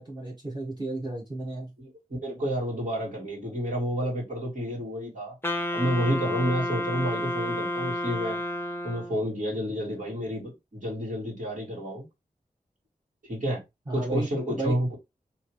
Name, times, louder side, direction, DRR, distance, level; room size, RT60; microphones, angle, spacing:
voice 1, 0.0-1.7 13.9-14.7, right 2 dB, 30° right, 1.4 m, -33 dB
voice 2, 2.2-5.3 5.7-8.4 8.8-12.0 13.3-13.6 13.9-15.0, equal, 60° right, 2.3 m, -30 dB
Wind instrument woodwind instrument, 5.4-9.3, left 1 dB, 15° left, 0.7 m, -30 dB
3.2 x 2.8 x 3.1 m
cardioid pair, 50°, 15 cm